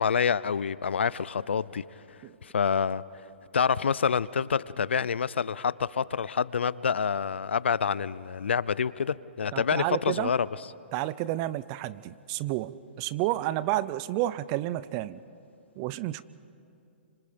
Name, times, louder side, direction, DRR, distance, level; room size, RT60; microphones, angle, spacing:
voice 1, 0.0-1.8 2.4-3.0 3.5-10.5, left 6 dB, 85° left, 19 dB, 0.6 m, -27 dB
voice 2, 9.5-10.3 10.9-15.2 15.8-16.2, right 15 dB, 35° right, 18 dB, 0.6 m, -30 dB
30.0 x 26.0 x 5.2 m, 2.6 s
hypercardioid pair, 140°, 6 cm